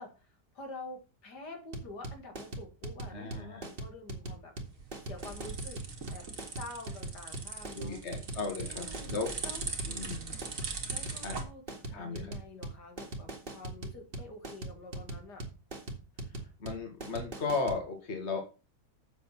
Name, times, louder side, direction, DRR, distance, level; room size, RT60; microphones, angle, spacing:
voice 1, 0.0-4.5 5.0-5.8 6.1-6.3 6.6-8.0 8.6-9.1 9.4-10.1 10.9-15.5, left 2 dB, 70° left, 4 dB, 2.7 m, -47 dB
sound 1, 1.7-17.8, right 2 dB, 30° right, 2.0 m, -40 dB
voice 2, 3.1-3.7 7.7-9.3 9.9-10.3 11.2-11.4 11.9-12.3 16.6-18.4, left 4 dB, 40° left, 4 dB, 2.2 m, -35 dB
sound 2, 4.7-11.4, right 4 dB, 50° right, 2.1 m, -40 dB
7.8 x 7.4 x 5.9 m, 0.33 s
omnidirectional pair, 1.8 m